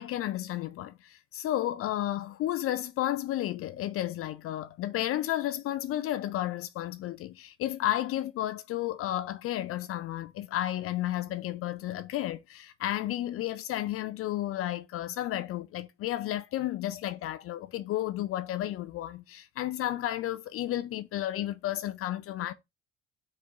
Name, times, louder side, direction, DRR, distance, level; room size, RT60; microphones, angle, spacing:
voice 1, 0.0-22.5, left 13 dB, 40° left, 0.4 m, -32 dB
5.4 x 2.1 x 3.6 m
hypercardioid pair, 60°, 35 cm